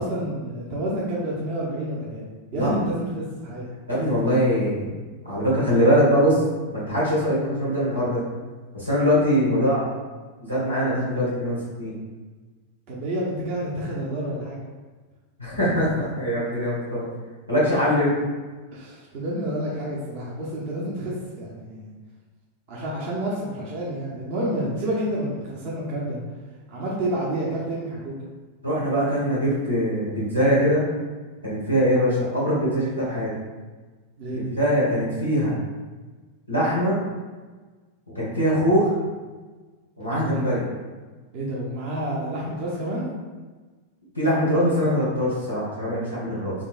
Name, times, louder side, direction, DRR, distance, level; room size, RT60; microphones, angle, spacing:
voice 1, 0.0-2.2 2.5-3.7 12.9-14.6 18.7-21.9 22.7-26.2 26.7-28.1 34.2-34.6 40.1-40.4 41.3-43.1, right 1 dB, 45° right, -5 dB, 0.7 m, -29 dB
voice 2, 3.9-4.9 5.2-6.4 6.7-8.2 8.7-9.9 10.4-11.9 15.4-17.0 17.5-18.1 28.6-30.8 31.4-33.3 34.6-35.6 36.5-37.0 38.1-38.9 40.0-40.6 44.1-46.5, equal, 90° right, -9 dB, 1.3 m, -22 dB
3.8 x 2.7 x 2.4 m, 1.3 s
figure-of-eight pair, 90°, 0 cm